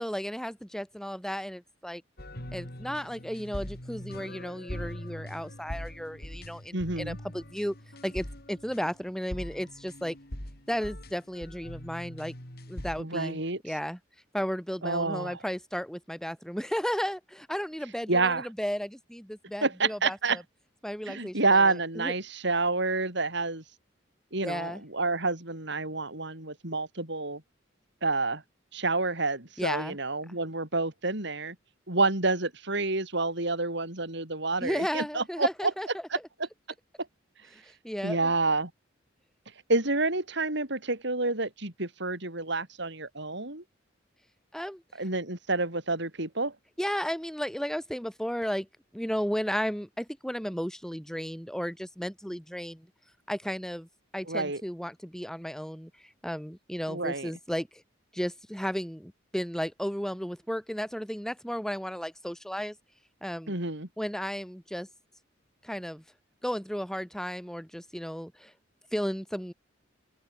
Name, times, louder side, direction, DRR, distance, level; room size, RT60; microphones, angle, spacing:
voice 1, 0.0-2.0 2.5-7.7 8.0-10.2 10.7-12.3 12.7-14.0 14.3-20.4 20.8-22.1 24.4-24.8 29.6-30.0 34.6-36.0 37.5-38.3 44.5-44.8 46.8-48.7 48.9-52.9 53.3-53.9 54.1-55.9 56.2-57.8 58.1-62.8 63.2-63.6 64.0-64.9 65.6-66.0 66.4-68.5 68.9-69.5, equal, 5° left, 7.3 m, -34 dB
sound 1, 2.2-13.0, equal, 55° left, 5.9 m, -42 dB
voice 2, 6.7-7.2 13.0-13.6 14.8-15.4 18.1-18.5 19.6-20.4 21.1-23.6 24.3-27.4 28.0-28.4 28.7-31.6 31.9-35.7 38.0-38.7 39.7-43.6 45.0-46.5 54.3-54.6 56.9-57.3 63.5-63.9, right 3 dB, 65° right, 6.0 m, -28 dB
open air
head